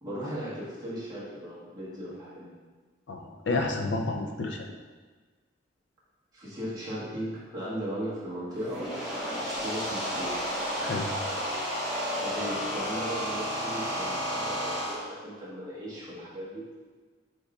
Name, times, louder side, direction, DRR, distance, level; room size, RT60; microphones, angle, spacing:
voice 1, 0.0-2.5 6.3-8.9 9.3-10.4 12.1-16.6, equal, 20° right, -9 dB, 1.4 m, -37 dB
voice 2, 3.1-4.6 10.8-11.1, left 3 dB, 65° left, 3 dB, 0.5 m, -30 dB
sound 1, 8.5-14.9, equal, 5° right, 1.5 m, -32 dB
5.4 x 3.6 x 2.4 m, 1.4 s
head